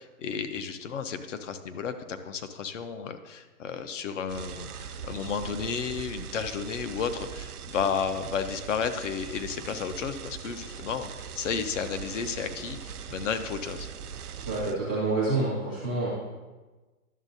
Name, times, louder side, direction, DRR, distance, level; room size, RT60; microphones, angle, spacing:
voice 1, 0.0-4.7 5.0-13.9, left 6 dB, 55° left, 9 dB, 0.7 m, -32 dB
sound 1, 4.3-14.7, right 7 dB, 85° right, 0.7 m, -40 dB
voice 2, 14.5-16.1, right 3 dB, 10° left, -9 dB, 0.3 m, -27 dB
11.0 x 6.3 x 2.7 m, 1.2 s
hypercardioid pair, 135°, 44 cm